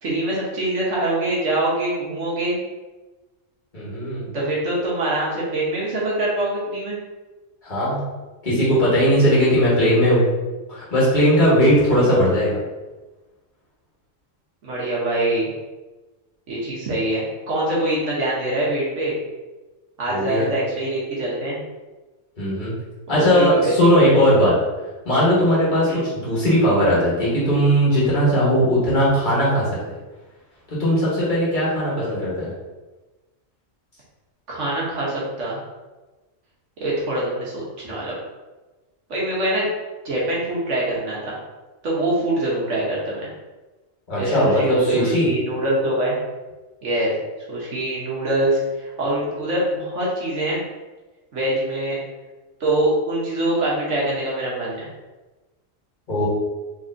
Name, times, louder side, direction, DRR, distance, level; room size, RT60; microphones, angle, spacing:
voice 1, 0.0-2.6 4.3-7.0 14.6-15.5 16.5-19.2 20.0-21.6 23.1-24.1 25.9-26.0 34.5-35.6 36.8-38.2 39.1-39.7 40.0-41.4 41.8-43.3 44.2-46.1 46.8-47.2 47.5-50.7 51.3-52.0 52.6-54.9, right 1 dB, 70° right, -6 dB, 1.4 m, -24 dB
voice 2, 3.7-4.3 7.6-8.0 8.4-10.2 10.7-12.6 20.1-20.5 22.4-22.7 23.1-24.5 25.0-30.0 30.7-32.5 44.1-45.3 56.1-56.3, equal, 40° left, -8 dB, 1.6 m, -18 dB
4.2 x 3.2 x 2.6 m, 1.2 s
omnidirectional pair, 1.3 m